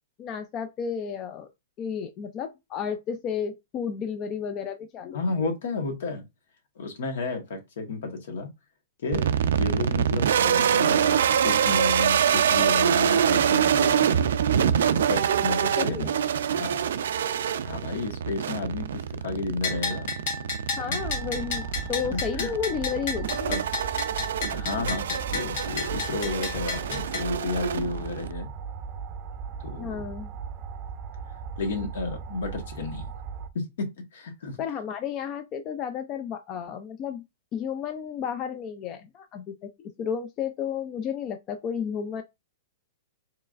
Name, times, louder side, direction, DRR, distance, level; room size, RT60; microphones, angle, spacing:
voice 1, 0.2-1.5 1.8-5.2 15.8-16.1 20.8-23.6 29.8-30.3 34.6-37.2 37.5-42.2, left 7 dB, 25° left, 0.4 m, -32 dB
voice 2, 5.1-6.2 6.8-8.5 9.0-11.1 11.4-14.3 15.1-16.2 16.5-16.8 17.6-20.1 22.1-22.5 23.5-23.6 24.5-28.5 29.6-30.0 31.6-33.1 33.5-34.6, left 3 dB, 70° left, 1.5 m, -32 dB
sound 1, 9.1-28.3, right 8 dB, 80° right, 0.4 m, -25 dB
Bell, 19.6-27.3, left 4 dB, 50° left, 1.2 m, -33 dB
sound 2, 21.0-33.5, right 6 dB, 25° right, 0.6 m, -37 dB
4.6 x 3.1 x 2.5 m
hypercardioid pair, 155°, 0 cm